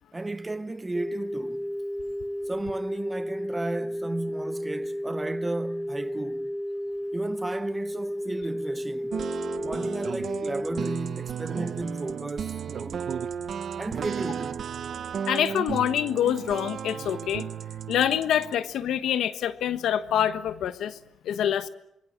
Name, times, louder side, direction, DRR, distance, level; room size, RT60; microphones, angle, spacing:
voice 1, 0.1-1.7 2.5-6.6 7.1-9.2 9.6-13.1 13.8-14.7, right 2 dB, 15° right, 0.9 m, -34 dB
sound 1, 0.9-11.0, equal, 5° left, 3.5 m, -33 dB
sound 2, 9.1-18.5, right 8 dB, 55° right, 1.0 m, -34 dB
voice 2, 15.3-17.5 17.9-21.0 21.2-21.7, left 10 dB, 75° left, 1.3 m, -26 dB
26.0 x 22.0 x 7.5 m
cardioid pair, 90°, 0 cm